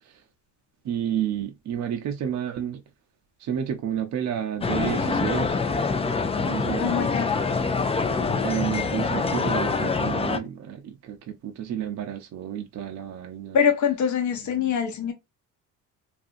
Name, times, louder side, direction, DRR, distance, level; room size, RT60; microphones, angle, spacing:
voice 1, 0.8-2.8 3.4-5.9 6.5-7.1 8.4-13.6, right 9 dB, 50° right, 0.5 m, -30 dB
sound 1, 4.6-10.4, left 4 dB, 15° left, 0.4 m, -25 dB
voice 2, 6.8-7.4 13.5-15.1, left 7 dB, 50° left, 0.8 m, -24 dB
2.7 x 2.5 x 2.4 m
cardioid pair, 85°, 37 cm